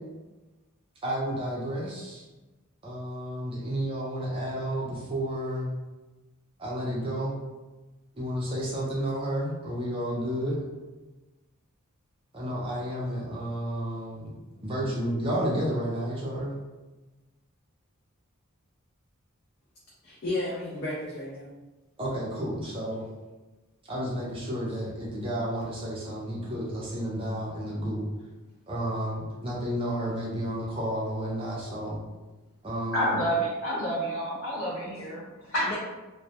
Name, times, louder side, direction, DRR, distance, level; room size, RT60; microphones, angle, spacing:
voice 1, 1.0-2.2 2.8-5.7 6.6-7.3 8.1-10.6 12.3-14.3 14.6-16.5 22.0-23.1 23.9-28.1 28.7-32.0 32.6-33.2, equal, 25° right, -4 dB, 0.5 m, -31 dB
voice 2, 20.0-21.5 35.6-35.8, left 2 dB, 45° left, -6 dB, 0.4 m, -33 dB
voice 3, 32.9-35.8, equal, 75° left, -6 dB, 1.0 m, -29 dB
2.1 x 2.1 x 2.8 m, 1.2 s
head